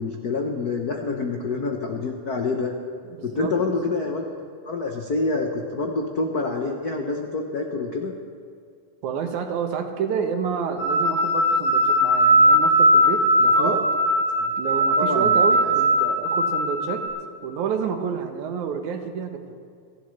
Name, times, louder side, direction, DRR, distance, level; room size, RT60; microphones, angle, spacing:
voice 1, 0.0-2.7 3.2-4.3 4.7-8.1 13.6-13.7 15.0-15.7, left 3 dB, 80° left, 2 dB, 0.8 m, -27 dB
voice 2, 3.0-3.8 9.0-13.8 14.6-17.0 17.4-19.5, right 6 dB, 85° right, 6 dB, 2.5 m, -29 dB
sound 1, 10.8-17.1, right 1 dB, 45° left, 4.0 m, -19 dB
28.0 x 11.5 x 3.3 m, 2.3 s
omnidirectional pair, 3.3 m